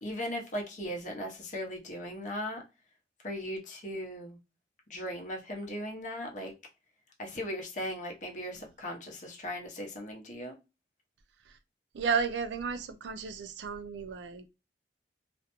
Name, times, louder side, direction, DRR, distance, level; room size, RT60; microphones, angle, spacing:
voice 1, 0.0-2.6 3.2-4.4 4.9-6.5 7.2-10.5, equal, 40° left, 0.7 m, -38 dB
voice 2, 11.9-14.4, right 6 dB, 70° right, 0.4 m, -33 dB
2.4 x 2.1 x 2.9 m
head